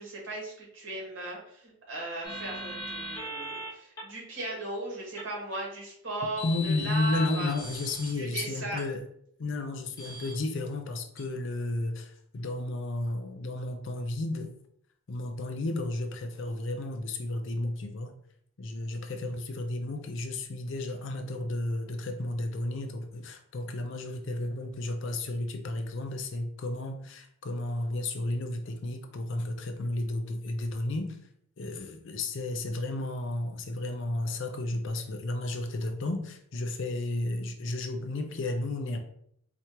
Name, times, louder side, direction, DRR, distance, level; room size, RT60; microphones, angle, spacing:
voice 1, 0.0-7.5 8.1-8.8, right 1 dB, 60° right, -4 dB, 1.5 m, -37 dB
sound 1, 2.2-3.7 4.0-4.1 5.2-5.3 6.4-8.1 8.8-8.9 10.0-10.3 11.2-11.3, left 1 dB, 15° left, 1.0 m, -39 dB
voice 2, 6.4-9.0 9.4-14.5 15.1-18.1 18.6-31.2 31.6-39.0, left 2 dB, 60° left, 6 dB, 0.5 m, -33 dB
4.4 x 2.5 x 2.8 m, 0.67 s
head